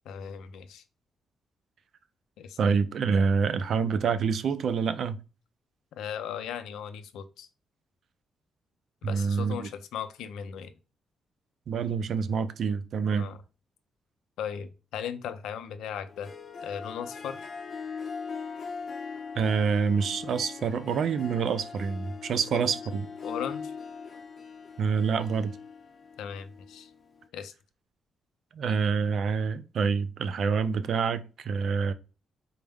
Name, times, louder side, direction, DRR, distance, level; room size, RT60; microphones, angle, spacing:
voice 1, 0.1-0.8 2.4-2.6 6.0-7.5 9.0-10.7 13.2-13.4 14.4-16.3 16.6-17.5 22.5-22.6 23.2-23.7 26.2-26.9 27.3-27.5, left 8 dB, 90° left, 0.4 m, -37 dB
voice 2, 2.6-5.2 9.0-9.7 11.7-13.3 19.4-23.1 24.8-25.6 28.5-31.9, right 6 dB, 65° right, 0.4 m, -27 dB
Harp, 16.1-27.3, left 5 dB, 45° left, 0.6 m, -40 dB
4.4 x 2.1 x 3.5 m
cardioid pair, 95°, 0 cm